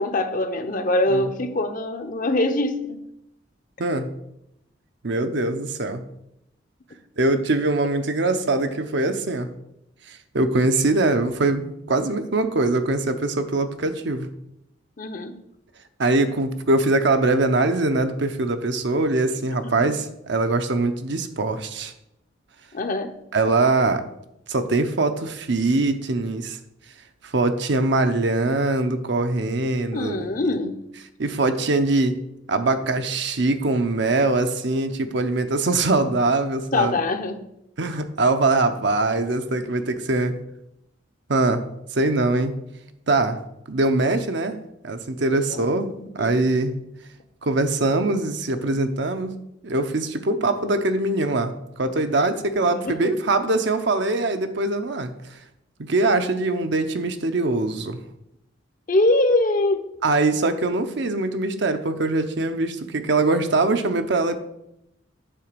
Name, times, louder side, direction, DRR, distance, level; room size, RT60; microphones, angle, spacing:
voice 1, 0.0-3.0 15.0-15.4 19.8-19.9 22.7-23.2 29.9-30.8 36.7-37.4 45.5-45.6 46.0-46.3 52.6-53.2 58.9-59.9, left 2 dB, 45° left, 8 dB, 0.8 m, -23 dB
voice 2, 3.8-4.1 5.0-6.0 7.2-9.5 10.1-14.3 16.0-21.9 23.3-24.1 24.5-26.6 27.2-30.2 31.2-32.2 32.5-37.0 37.8-40.4 41.3-41.6 41.9-42.5 43.1-43.4 43.7-44.6 44.8-46.7 47.4-55.1 55.9-58.0 60.0-64.4, right 2 dB, 65° right, 8 dB, 0.8 m, -22 dB
9.0 x 3.9 x 6.7 m, 0.81 s
head